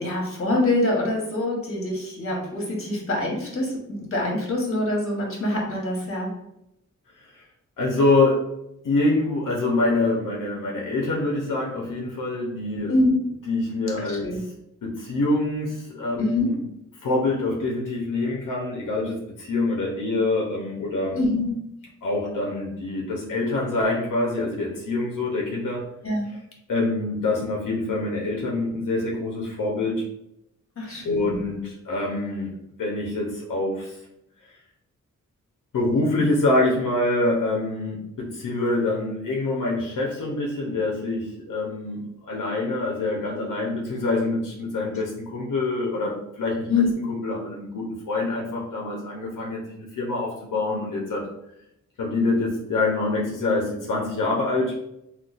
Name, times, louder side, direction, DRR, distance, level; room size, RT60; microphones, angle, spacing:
voice 1, 0.0-6.3 12.9-13.2 14.0-14.4 16.2-16.5 21.1-21.5 26.0-26.3 30.8-31.3 46.7-46.9, left 2 dB, 45° left, -1 dB, 1.1 m, -25 dB
voice 2, 7.8-8.5 8.8-12.9 13.5-14.3 14.8-16.6 17.0-21.2 22.0-25.8 26.7-30.0 31.0-32.5 32.8-34.0 34.4-34.5 35.7-46.7 47.1-51.3 52.0-54.7, left 2 dB, 85° left, -2 dB, 0.6 m, -25 dB
3.8 x 2.3 x 2.4 m, 0.82 s
wide cardioid pair, 90°, 31 cm